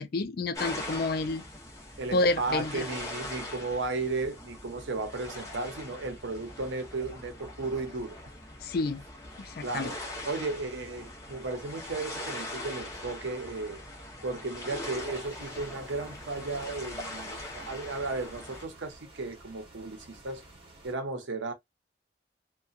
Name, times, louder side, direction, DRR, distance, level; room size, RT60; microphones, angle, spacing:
voice 1, 0.0-1.4 2.1-2.9 8.6-9.0 9.4-9.9, left 2 dB, 55° left, 0.4 m, -29 dB
sound 1, 0.5-18.6, left 1 dB, 15° left, 0.8 m, -42 dB
voice 2, 2.0-8.2 9.6-10.0 10.3-13.8 14.2-20.4 20.8-21.5, right 3 dB, 90° right, 0.8 m, -35 dB
sound 2, 14.9-20.9, right 1 dB, 30° right, 1.1 m, -53 dB
2.8 x 2.2 x 2.4 m
head